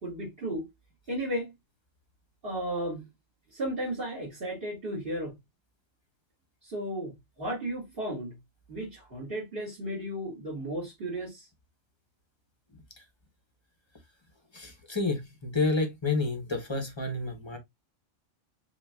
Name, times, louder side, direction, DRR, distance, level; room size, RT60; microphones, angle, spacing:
voice 1, 0.0-0.7 1.1-1.5 2.4-3.0 3.5-5.3 6.6-8.4 8.7-11.5, right 1 dB, 50° right, 2.4 m, -34 dB
voice 2, 14.5-17.6, left 3 dB, 25° left, 0.8 m, -30 dB
5.5 x 2.7 x 2.3 m
omnidirectional pair, 1.3 m